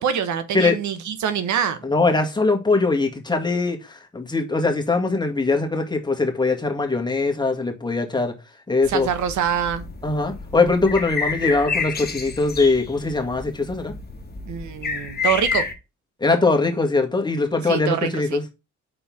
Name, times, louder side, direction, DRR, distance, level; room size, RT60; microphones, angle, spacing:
voice 1, 0.0-1.8 8.9-9.8 14.5-15.6 17.6-18.4, right 8 dB, 70° right, 1.1 m, -25 dB
voice 2, 1.8-8.3 8.7-9.1 10.0-13.9 16.2-18.4, left 3 dB, 15° left, 1.8 m, -21 dB
sound 1, 8.8-15.7, left 5 dB, 30° left, 1.6 m, -30 dB
5.5 x 4.3 x 5.9 m
cardioid pair, 90°, 30 cm